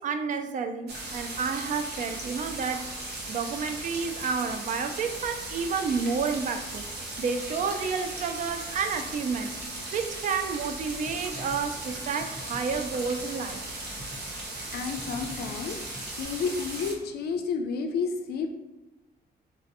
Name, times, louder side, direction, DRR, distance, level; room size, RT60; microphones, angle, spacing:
voice 1, 0.0-3.0 3.2-6.8 7.2-9.6 9.9-13.6, right 5 dB, 50° right, 7 dB, 0.4 m, -30 dB
sound 1, 0.9-16.9, right 2 dB, 90° right, 0.8 m, -37 dB
sound 2, 11.0-15.5 15.8-16.2, left 1 dB, 5° left, 0.6 m, -46 dB
voice 2, 14.7-15.8 16.2-18.5, left 5 dB, 75° left, 5 dB, 0.4 m, -31 dB
3.3 x 2.7 x 4.0 m, 1.0 s
wide cardioid pair, 145°, 16 cm